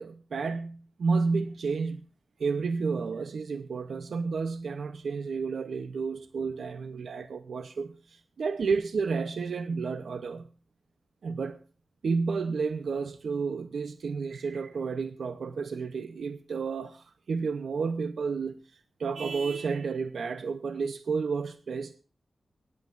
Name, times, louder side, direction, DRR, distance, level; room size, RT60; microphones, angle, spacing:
voice 1, 0.0-2.0 2.4-10.5 11.2-11.6 12.0-18.6 19.0-21.9, right 5 dB, 90° right, 0.7 m, -31 dB
24.0 x 10.5 x 2.5 m
wide cardioid pair, 145°, 0 cm